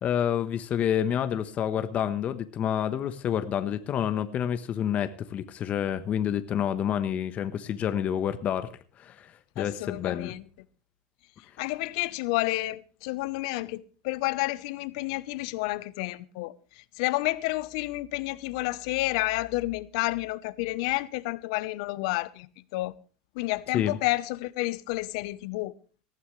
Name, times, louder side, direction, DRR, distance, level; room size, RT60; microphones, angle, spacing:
voice 1, 0.0-8.7 9.0-10.3 23.7-24.0, left 9 dB, 40° left, 1.2 m, -28 dB
voice 2, 9.6-10.4 11.6-16.5 17.0-22.9 23.4-25.7, left 20 dB, 70° left, 0.9 m, -30 dB
19.0 x 14.0 x 3.3 m
hypercardioid pair, 95°, 4 cm